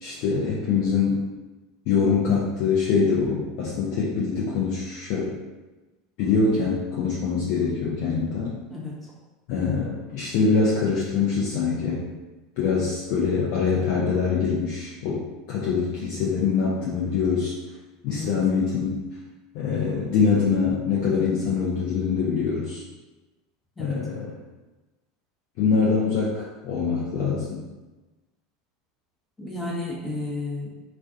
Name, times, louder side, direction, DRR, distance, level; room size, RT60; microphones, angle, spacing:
voice 1, 0.0-1.2 1.9-5.4 6.2-8.5 9.5-12.0 12.6-17.5 18.0-19.0 19.5-22.8 23.8-24.4 25.6-27.6, left 5 dB, 55° left, -7 dB, 0.5 m, -24 dB
voice 2, 29.4-30.7, left 2 dB, 20° left, -3 dB, 0.8 m, -32 dB
2.4 x 2.2 x 2.4 m, 1.1 s
figure-of-eight pair, 80°, 0 cm